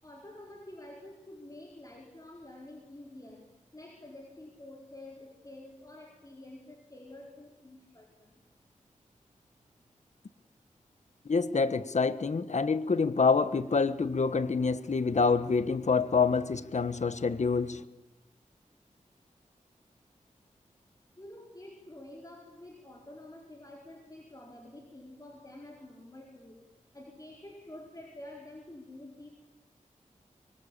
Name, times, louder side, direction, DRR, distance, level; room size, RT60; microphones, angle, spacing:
voice 1, 0.0-8.4 21.2-26.6 26.9-29.3, left 1 dB, 25° left, 4.7 m, -49 dB
voice 2, 11.3-17.8, left 4 dB, 60° left, 1.3 m, -27 dB
25.5 x 25.0 x 8.8 m
wide cardioid pair, 75°, 13 cm